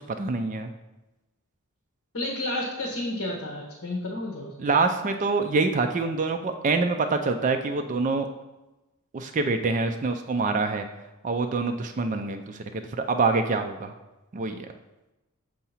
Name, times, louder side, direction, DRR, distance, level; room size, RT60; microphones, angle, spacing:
voice 1, 0.1-0.7 4.6-8.3 9.1-10.9 11.2-12.8 13.1-13.9 14.3-14.7, right 3 dB, 35° right, 6 dB, 0.4 m, -25 dB
voice 2, 2.1-4.5, left 1 dB, 65° left, -3 dB, 1.0 m, -31 dB
6.9 x 2.8 x 5.6 m, 1.0 s
head